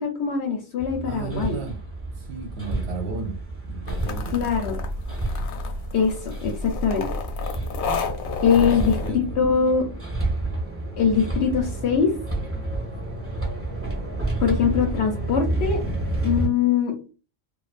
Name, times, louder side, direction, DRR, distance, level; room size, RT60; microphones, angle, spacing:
voice 1, 0.0-1.6 4.3-4.8 5.9-7.1 8.4-9.9 11.0-12.1 14.4-15.8 16.2-16.9, left 6 dB, 65° left, 3 dB, 0.7 m, -22 dB
Hammer, 0.8-16.5, right 2 dB, 10° right, 1.0 m, -30 dB
voice 2, 1.0-1.8 2.1-3.4 3.6-4.3 8.6-9.5, right 5 dB, 65° right, 3 dB, 0.8 m, -34 dB
sound 1, 3.9-9.1, left 3 dB, 90° left, 1.0 m, -30 dB
2.4 x 2.3 x 2.4 m, 0.35 s
omnidirectional pair, 1.4 m